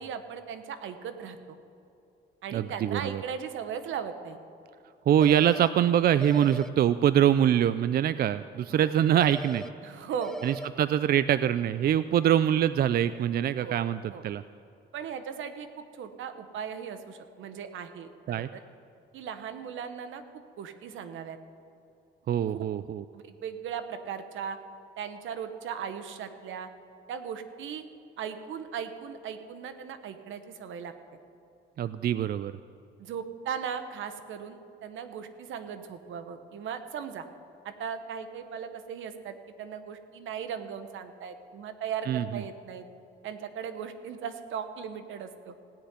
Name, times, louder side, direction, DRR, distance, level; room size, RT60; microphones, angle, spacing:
voice 1, 0.0-1.4 2.4-4.4 8.7-8.9 9.8-10.4 13.6-13.8 14.1-14.2 14.9-18.6 19.1-21.4 22.5-22.7 23.1-24.6 25.0-26.7 27.1-27.8 28.2-30.9 33.0-37.2 37.6-42.8 43.2-45.5, right 7 dB, 75° right, 9 dB, 1.1 m, -38 dB
voice 2, 2.5-3.2 5.1-9.6 10.4-14.4 18.3-18.5 22.3-23.0 31.8-32.5 42.1-42.4, right 10 dB, 50° right, 14 dB, 0.4 m, -24 dB
sound 1, 5.2-5.7 6.2-6.7 9.2-9.7 10.2-10.7, right 1 dB, ahead, 0.6 m, -38 dB
16.5 x 6.7 x 9.5 m, 2.7 s
cardioid pair, 90°, 20 cm